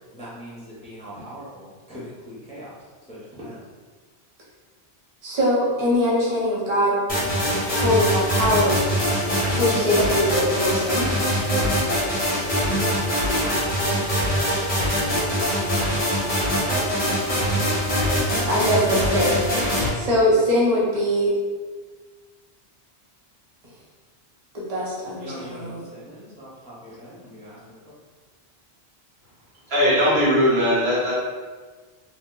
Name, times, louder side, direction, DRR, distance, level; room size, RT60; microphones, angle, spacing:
voice 1, 0.1-2.7 3.0-3.6 14.3-15.4 25.1-27.9, equal, 10° left, -9 dB, 0.6 m, -41 dB
voice 2, 5.2-7.0 7.7-8.8 9.5-11.0 18.4-19.4 19.9-21.3 24.5-25.8, left 1 dB, 40° right, -6 dB, 0.8 m, -22 dB
sound 1, 7.1-19.9, equal, 35° left, 0.8 m, -23 dB
voice 3, 29.7-31.1, equal, 75° right, -8 dB, 1.3 m, -19 dB
2.6 x 2.1 x 3.7 m, 1.4 s
omnidirectional pair, 1.0 m